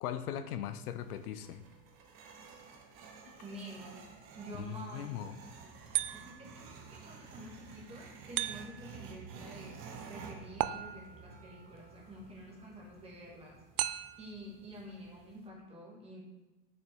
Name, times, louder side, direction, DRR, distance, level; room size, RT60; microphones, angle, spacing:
voice 1, 0.0-1.6 4.5-5.4, left 10 dB, 80° left, 11 dB, 0.7 m, -39 dB
sound 1, 0.6-15.5, right 5 dB, 30° right, 0.9 m, -52 dB
voice 2, 3.4-4.0 4.3-5.5 5.8-9.8 10.0-13.6 14.2-16.2, equal, 15° right, -3 dB, 1.8 m, -49 dB
sound 2, 5.9-6.6 8.4-9.0 10.6-11.3 13.8-14.4, right 14 dB, 85° right, 0.6 m, -36 dB
6.2 x 6.1 x 4.3 m, 1.1 s
supercardioid pair, 155°, 44 cm